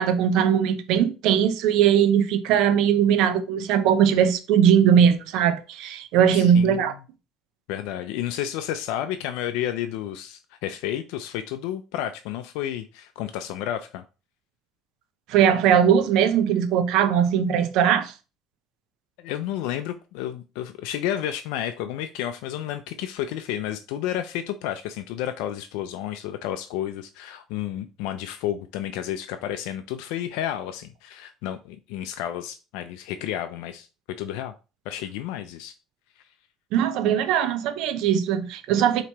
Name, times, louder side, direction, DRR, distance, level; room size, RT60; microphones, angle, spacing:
voice 1, 0.0-6.9 15.3-18.1 36.7-39.0, right 8 dB, 75° right, 0.5 m, -20 dB
voice 2, 6.3-6.9 7.7-14.0 19.2-34.5 34.9-35.7 36.2-36.3, left 11 dB, 85° left, 0.3 m, -31 dB
4.4 x 2.9 x 2.8 m
cardioid pair, 105°, 0 cm